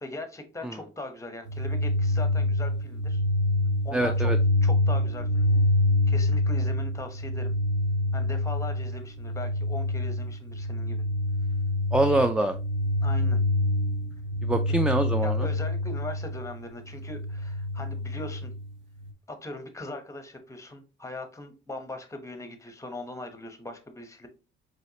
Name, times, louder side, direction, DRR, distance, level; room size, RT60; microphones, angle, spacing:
voice 1, 0.0-3.2 3.8-4.3 4.6-5.5 6.1-7.5 8.1-11.0 13.0-13.4 14.7-14.8 15.2-18.5 19.3-24.3, left 2 dB, 15° left, 7 dB, 1.0 m, -40 dB
sound 1, 1.5-16.6 16.9-18.7 19.0-19.1, left 1 dB, 70° right, 0.9 m, -26 dB
voice 2, 3.9-4.4 11.9-12.6 14.4-15.5, right 1 dB, 5° right, 8 dB, 0.3 m, -25 dB
4.4 x 3.1 x 2.8 m, 0.31 s
cardioid pair, 90°, 20 cm